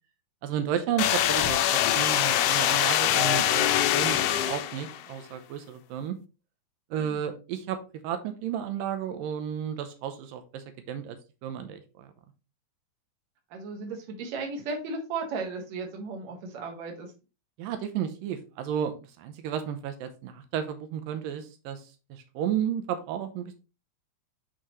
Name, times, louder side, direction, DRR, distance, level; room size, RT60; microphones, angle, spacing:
voice 1, 0.4-6.2 6.9-7.8 8.0-11.2 11.4-12.1 17.6-23.5, right 9 dB, 90° right, 8 dB, 2.5 m, -33 dB
sound 1, 1.0-5.0, left 12 dB, 80° left, 1.7 m, -24 dB
voice 2, 4.2-4.5 13.5-17.1, right 4 dB, 60° right, 2 dB, 2.6 m, -36 dB
8.8 x 4.6 x 3.1 m, 0.31 s
omnidirectional pair, 3.9 m